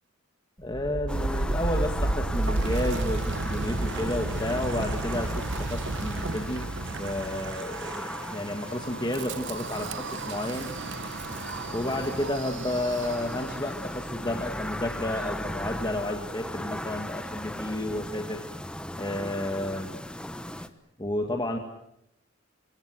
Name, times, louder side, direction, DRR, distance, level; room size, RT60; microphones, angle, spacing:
voice 1, 0.6-6.7 7.0-10.7 11.7-18.4 19.0-20.0 21.0-21.6, left 1 dB, 20° left, 3 dB, 2.0 m, -31 dB
Wind, 0.6-13.6, right 2 dB, 55° right, 1.0 m, -32 dB
sound 1, 1.1-20.7, left 1 dB, 5° left, 1.1 m, -37 dB
26.0 x 25.0 x 7.7 m, 0.81 s
head